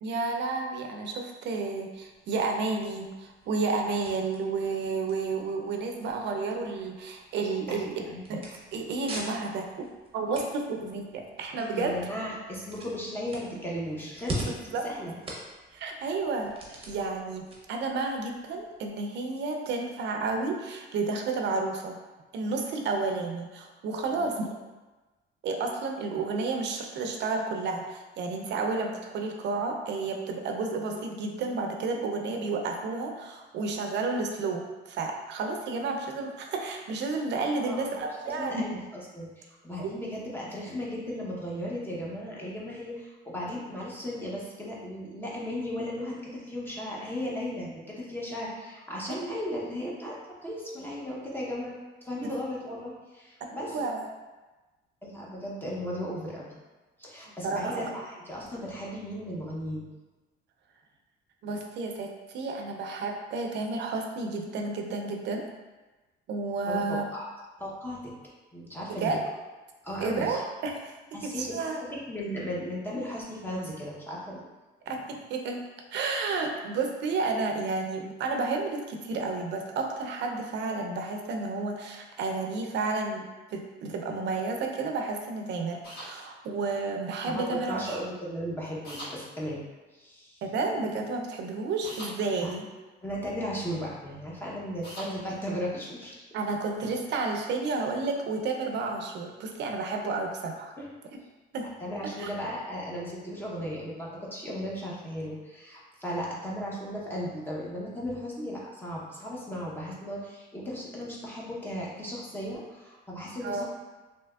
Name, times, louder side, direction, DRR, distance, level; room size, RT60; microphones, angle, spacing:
voice 1, 0.0-8.0 8.3-9.9 10.1-11.9 14.7-14.9 15.7-22.0 22.3-24.5 25.4-38.6 39.8-39.9 53.4-54.0 57.4-57.9 61.4-65.5 66.3-67.1 69.0-69.3 70.0-71.8 74.9-75.6 75.9-88.0 90.4-92.7 96.3-100.7 101.5-101.7 102.2-102.3 113.4-113.6, right 3 dB, 65° right, 3 dB, 0.5 m, -31 dB
sound 1, 1.9-18.9, right 1 dB, 30° right, 0.7 m, -44 dB
voice 2, 7.7-8.4 11.7-14.5 14.8-15.2 24.1-24.3 37.6-37.9 38.2-50.2 50.4-51.8 52.0-53.8 55.0-56.6 57.0-59.9 66.7-67.3 67.6-68.1 68.5-69.2 69.8-70.4 71.1-74.4 87.3-89.6 89.9-90.4 92.4-92.5 93.0-96.3 100.8-100.9 101.8-113.6, equal, 10° left, -5 dB, 0.6 m, -36 dB
sound 2, 85.8-86.1 88.8-89.1 91.8-92.1 94.8-95.1, equal, 55° left, 1.2 m, -40 dB
3.4 x 2.8 x 2.2 m, 1.2 s
cardioid pair, 120°, 20 cm